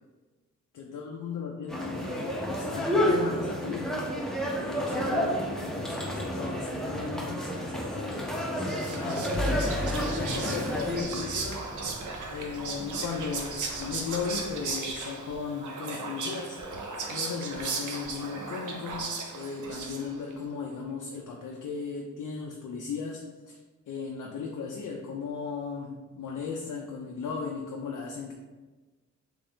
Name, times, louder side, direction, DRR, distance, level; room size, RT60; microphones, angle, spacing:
voice 1, 0.7-9.4 9.9-11.7 12.3-16.6 17.1-23.6 23.9-28.3, left 5 dB, 90° left, 0 dB, 0.4 m, -37 dB
sound 1, 1.7-11.0, equal, ahead, 0.5 m, -30 dB
Whispering, 8.3-20.3, right 4 dB, 85° right, 0.6 m, -36 dB
Truck / Idling, 9.3-14.6, equal, 65° right, 1.0 m, -38 dB
3.3 x 2.6 x 3.4 m, 1.2 s
wide cardioid pair, 120°, 30 cm